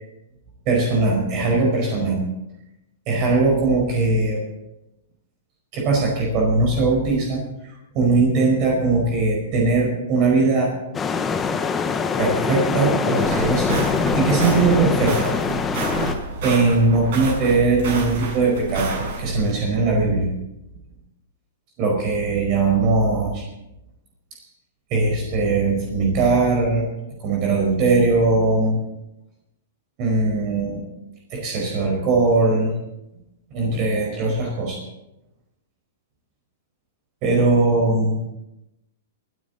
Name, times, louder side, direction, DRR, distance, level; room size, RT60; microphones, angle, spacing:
voice 1, 0.7-2.2 3.1-4.5 5.7-7.4 7.9-10.7 12.2-15.3 16.4-18.9 19.2-20.3 21.8-23.5 24.9-26.8 27.2-28.8 30.0-30.8 31.3-32.7 33.5-34.8 37.2-38.2, right 3 dB, 40° right, -1 dB, 4.6 m, -20 dB
sound 1, 10.9-16.1, left 5 dB, 15° left, 1.0 m, -23 dB
sound 2, 13.2-19.5, right 3 dB, 55° right, 7.3 m, -29 dB
27.5 x 9.4 x 4.0 m, 0.91 s
hypercardioid pair, 145°, 0 cm